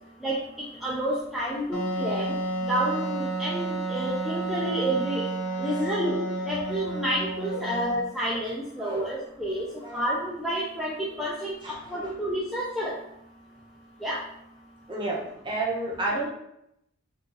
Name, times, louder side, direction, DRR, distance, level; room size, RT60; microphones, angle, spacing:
voice 1, 0.8-2.3 2.7-5.3 5.6-6.2 6.5-9.6 9.9-13.0 14.0-14.2, equal, ahead, -6 dB, 0.3 m, -29 dB
Wind instrument woodwind instrument, 1.7-8.2, right 2 dB, 65° left, 0.9 m, -31 dB
voice 2, 11.6-12.1 14.9-15.2 15.4-16.3, right 2 dB, 20° right, -3 dB, 0.7 m, -31 dB
2.6 x 2.4 x 3.8 m, 0.79 s
head